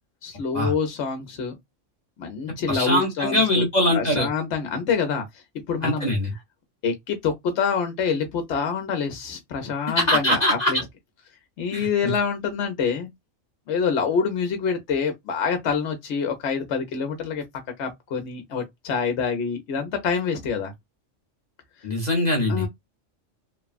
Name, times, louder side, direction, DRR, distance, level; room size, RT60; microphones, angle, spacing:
voice 1, 0.2-1.5 2.2-3.6 3.9-5.3 5.7-6.1 6.8-10.8 11.6-13.1 13.7-17.4 17.8-20.7 22.5-22.7, left 6 dB, 65° left, 1.0 m, -26 dB
voice 2, 2.7-4.3 5.8-6.3 10.0-10.7 11.7-12.1 21.8-22.7, left 1 dB, 40° left, 0.8 m, -22 dB
3.1 x 2.2 x 2.3 m
omnidirectional pair, 1.3 m